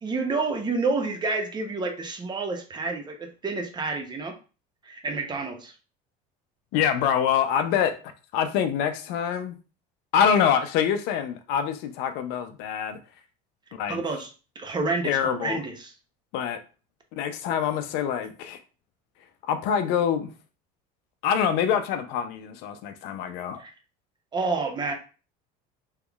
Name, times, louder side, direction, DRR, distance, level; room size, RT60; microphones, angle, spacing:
voice 1, 0.0-4.3 4.8-5.7 13.9-14.3 14.6-15.9 23.6-23.7 24.3-24.9, right 3 dB, 25° right, 0.7 m, -29 dB
voice 2, 6.7-8.0 8.3-9.6 10.1-13.0 13.7-14.0 15.0-15.6 16.3-16.6 17.1-18.6 19.4-20.3 21.2-23.6, left 8 dB, 65° left, 0.5 m, -25 dB
3.5 x 3.1 x 2.3 m
supercardioid pair, 115°, 18 cm